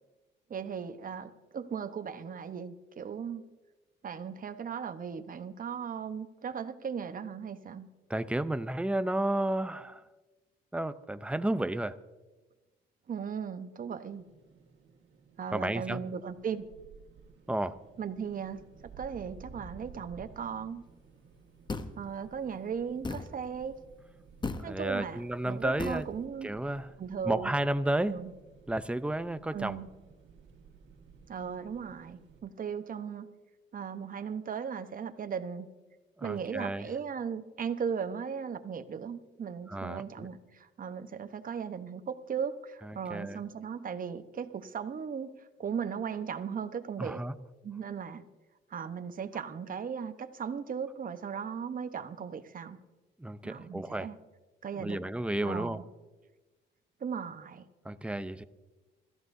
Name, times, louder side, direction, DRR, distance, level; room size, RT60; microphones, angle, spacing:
voice 1, 0.5-3.4 4.0-7.9 13.1-14.2 15.4-16.6 18.0-18.6 19.0-20.8 22.0-23.7 24.6-26.5 27.0-27.5 28.1-28.3 29.5-29.9 31.3-33.3 33.7-35.7 36.2-45.3 45.6-47.2 47.6-48.2 48.7-52.8 53.4-54.2 54.6-55.1 55.4-55.8 57.0-57.7, right 7 dB, 45° right, 10 dB, 1.0 m, -37 dB
voice 2, 8.1-10.0 10.7-12.0 15.5-16.0 17.5-17.8 24.6-26.1 26.4-26.9 27.2-28.2 28.7-29.8 36.2-36.9 39.7-40.3 42.8-43.4 47.0-47.3 53.2-54.1 54.8-55.8 57.8-58.4, right 1 dB, 5° right, 12 dB, 0.6 m, -32 dB
sound 1, 14.1-32.4, right 4 dB, 70° right, 1.8 m, -55 dB
sound 2, 21.7-22.0 23.0-23.3 24.4-24.7 25.8-26.1, left 3 dB, 20° left, 0.8 m, -35 dB
25.5 x 13.5 x 2.7 m, 1.2 s
cardioid pair, 90°, 20 cm